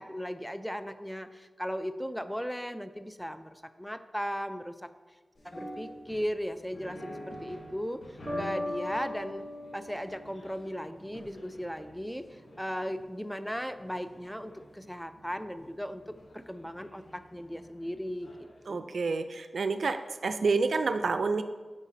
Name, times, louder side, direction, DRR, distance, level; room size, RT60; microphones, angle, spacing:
voice 1, 0.0-4.9 5.4-8.0 8.4-9.5 9.7-16.0 16.3-18.3 18.7-18.9, equal, ahead, 11 dB, 0.4 m, -37 dB
sound 1, 5.3-18.6, equal, 75° left, 1.1 m, -49 dB
sound 2, 8.3-11.1, left 1 dB, 15° right, 1.5 m, -38 dB
voice 2, 18.7-21.4, right 4 dB, 80° right, 9 dB, 0.3 m, -28 dB
8.1 x 5.0 x 2.7 m, 1.3 s
cardioid pair, 40°, 0 cm